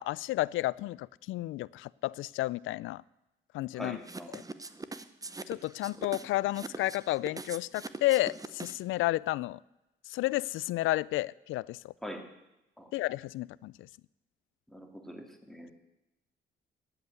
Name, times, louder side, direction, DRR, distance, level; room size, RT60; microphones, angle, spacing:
voice 1, 0.0-3.0 3.5-4.0 4.3-4.4 5.5-9.6 10.1-11.9 12.9-13.7, left 17 dB, 85° left, 22 dB, 0.4 m, -31 dB
voice 2, 3.7-4.3 12.0-12.3 12.8-12.9 14.7-15.7, equal, ahead, 3 dB, 2.5 m, -43 dB
sound 1, 4.0-8.9, right 3 dB, 20° right, 0.9 m, -42 dB
14.0 x 8.3 x 9.2 m, 0.95 s
cardioid pair, 90°, 20 cm